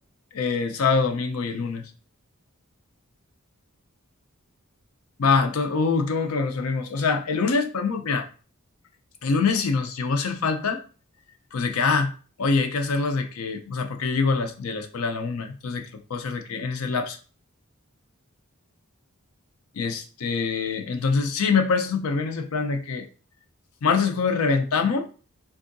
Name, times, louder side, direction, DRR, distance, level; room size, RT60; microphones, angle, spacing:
voice 1, 0.3-1.8 5.2-8.3 9.2-10.8 11.5-12.1 12.4-17.2 19.8-23.1 23.8-25.1, left 4 dB, 80° left, 6 dB, 0.5 m, -24 dB
3.6 x 2.6 x 2.6 m, 0.38 s
head